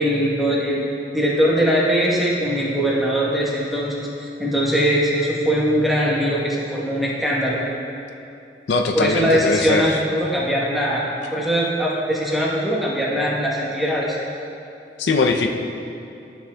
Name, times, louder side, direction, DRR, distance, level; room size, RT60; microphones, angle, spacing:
voice 1, 0.0-7.6 8.9-11.0 11.3-14.2, equal, ahead, -6 dB, 1.0 m, -21 dB
voice 2, 8.7-10.0 15.0-15.5, left 3 dB, 80° left, 3 dB, 0.5 m, -20 dB
12.0 x 6.1 x 2.2 m, 2.7 s
head